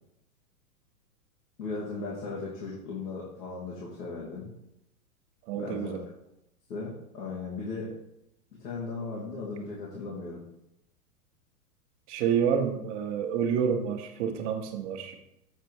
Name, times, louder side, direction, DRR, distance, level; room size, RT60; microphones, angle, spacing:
voice 1, 1.6-4.5 5.5-6.0 6.7-7.9 8.6-10.4, left 3 dB, 80° left, -7 dB, 2.5 m, -37 dB
voice 2, 5.5-6.0 12.1-15.2, right 7 dB, 50° right, 5 dB, 1.3 m, -28 dB
8.4 x 4.2 x 4.7 m, 0.83 s
hypercardioid pair, 120°, 47 cm